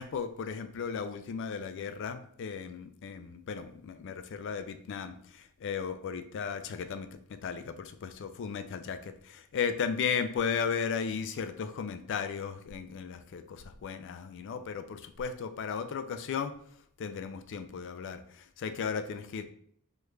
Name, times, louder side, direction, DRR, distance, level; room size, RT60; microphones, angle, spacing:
voice 1, 0.0-9.0 9.3-16.5 17.0-19.4, left 6 dB, 60° left, 9 dB, 0.3 m, -35 dB
3.2 x 2.4 x 3.1 m, 0.63 s
head